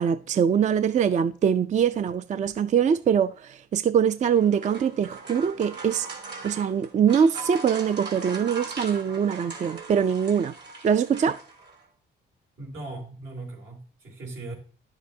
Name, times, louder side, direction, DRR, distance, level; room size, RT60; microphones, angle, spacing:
voice 1, 0.0-6.1 6.4-10.5 10.8-11.4, right 7 dB, 35° right, 0.4 m, -23 dB
sound 1, 4.2-11.8, right 4 dB, 60° right, 2.7 m, -40 dB
voice 2, 12.6-14.5, right 2 dB, 80° right, 3.6 m, -38 dB
10.5 x 7.3 x 2.7 m
cardioid pair, 90°, 20 cm